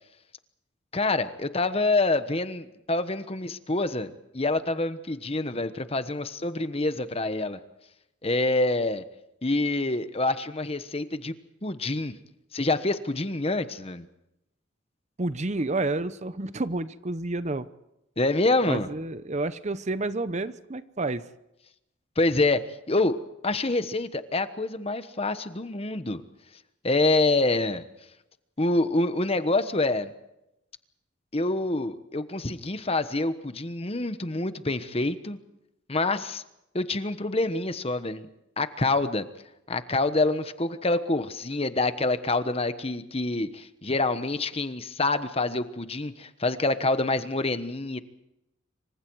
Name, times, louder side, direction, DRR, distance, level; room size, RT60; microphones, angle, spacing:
voice 1, 0.9-7.6 8.2-9.0 9.4-11.3 11.6-12.1 12.5-14.1 18.2-18.9 22.2-23.2 23.4-26.2 26.8-27.8 28.6-30.1 31.3-35.4 35.9-36.4 36.7-38.3 38.6-39.3 39.7-48.0, left 2 dB, 30° left, 11 dB, 1.2 m, -26 dB
voice 2, 15.2-17.7 18.7-21.3, right 2 dB, 35° right, 13 dB, 0.8 m, -30 dB
27.0 x 25.0 x 4.7 m, 0.86 s
head